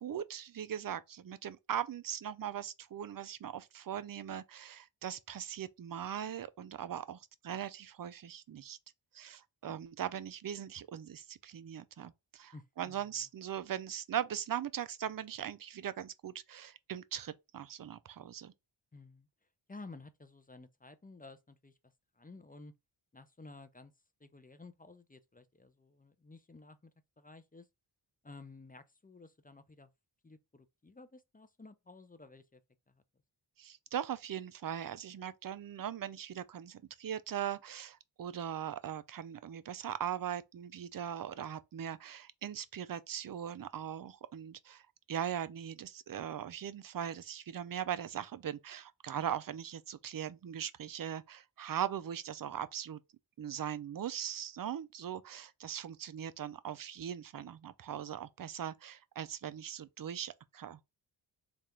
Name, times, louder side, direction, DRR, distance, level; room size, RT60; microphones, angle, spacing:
voice 1, 0.0-8.8 9.1-18.5 33.6-44.8 45.1-53.0 53.4-60.8, right 9 dB, 45° right, 0.5 m, -40 dB
voice 2, 12.5-13.3 18.9-19.3 19.7-21.8 22.1-22.7 23.1-23.9 24.2-26.9 27.2-27.7 28.2-29.9 30.2-32.6 32.9-33.0, left 3 dB, 20° left, 0.5 m, -53 dB
3.4 x 2.5 x 4.3 m
cardioid pair, 50°, 48 cm